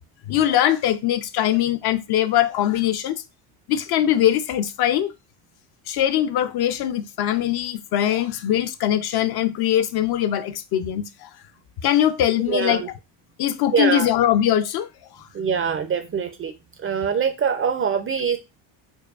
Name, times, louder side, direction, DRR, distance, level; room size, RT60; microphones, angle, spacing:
voice 1, 0.3-3.2 3.7-5.1 5.9-11.3 11.8-12.8 13.4-14.9, left 11 dB, 50° left, 0.5 m, -21 dB
voice 2, 12.5-12.9 13.7-14.1 15.3-16.5 16.8-18.4, right 6 dB, 30° right, 0.4 m, -23 dB
4.7 x 2.2 x 2.3 m
supercardioid pair, 85°, 50 cm